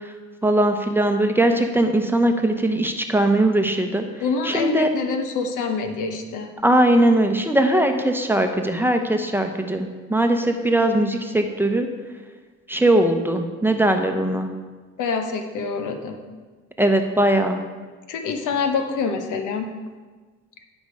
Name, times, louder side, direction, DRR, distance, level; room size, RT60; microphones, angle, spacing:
voice 1, 0.4-4.0 4.4-4.9 6.6-11.9 12.7-14.5 16.8-17.6, right 1 dB, 5° right, 5 dB, 0.8 m, -20 dB
voice 2, 4.2-6.5 15.0-16.2 18.1-19.7, left 5 dB, 85° left, 6 dB, 1.0 m, -26 dB
10.5 x 5.3 x 4.8 m, 1.4 s
cardioid pair, 90°, 30 cm